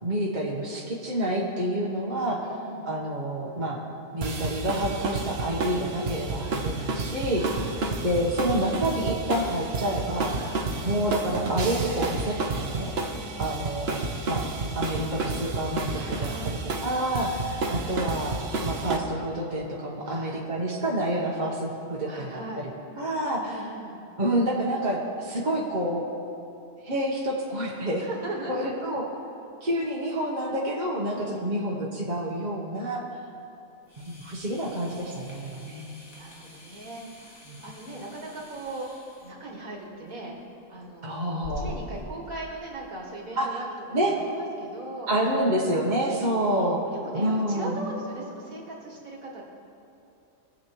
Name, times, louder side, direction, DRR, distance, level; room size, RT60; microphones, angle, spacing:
voice 1, 0.0-2.4 2.8-3.8 4.1-7.4 8.0-10.3 10.8-12.9 13.4-14.5 14.7-16.3 16.8-18.3 18.6-22.4 23.0-23.6 24.2-26.0 26.8-28.1 28.5-29.1 29.6-33.0 34.0-35.9 37.5-37.6 41.0-41.7 43.4-43.6 43.9-44.1 45.1-46.8 47.1-47.8, right 1 dB, 35° right, -4 dB, 1.2 m, -28 dB
voice 2, 2.4-2.9 7.3-7.8 10.3-10.6 13.1-13.4 15.9-16.6 20.0-20.4 22.1-22.7 23.4-24.0 28.0-28.7 31.1-31.5 35.7-35.9 36.1-38.9 39.2-40.3 40.7-41.2 41.6-45.1 46.3-46.6 46.9-49.5, right 2 dB, 85° right, -2 dB, 2.3 m, -39 dB
sound 1, 4.2-19.0, right 3 dB, 55° right, 1.1 m, -31 dB
sound 2, 33.8-42.0, left 1 dB, 90° left, 2.1 m, -45 dB
21.0 x 7.6 x 3.1 m, 2.7 s
omnidirectional pair, 1.4 m